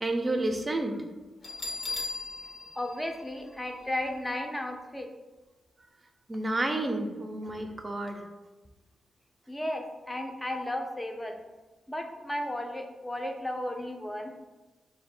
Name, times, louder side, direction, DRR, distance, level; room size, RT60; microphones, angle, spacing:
voice 1, 0.0-1.0 6.3-8.2, right 2 dB, 30° right, 5 dB, 0.6 m, -30 dB
Bell, 1.4-4.1, left 2 dB, 50° left, 0.9 m, -38 dB
voice 2, 2.8-5.1 9.5-11.4 11.9-14.3, left 1 dB, 15° left, 3 dB, 0.6 m, -34 dB
4.4 x 2.2 x 4.3 m, 1.2 s
cardioid pair, 60°, 0 cm